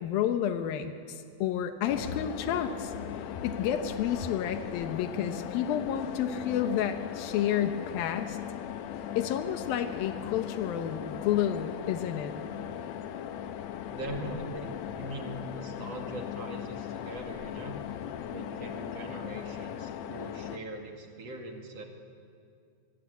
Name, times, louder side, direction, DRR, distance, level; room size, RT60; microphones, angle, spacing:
voice 1, 0.0-2.9 3.4-8.4 9.2-12.3, left 9 dB, 90° left, 7 dB, 2.9 m, -30 dB
sound 1, 1.9-20.6, left 10 dB, 70° left, 1.7 m, -38 dB
voice 2, 13.9-17.8 18.2-21.8, right 1 dB, 50° right, 2 dB, 3.1 m, -41 dB
26.0 x 22.5 x 8.3 m, 2.4 s
omnidirectional pair, 4.1 m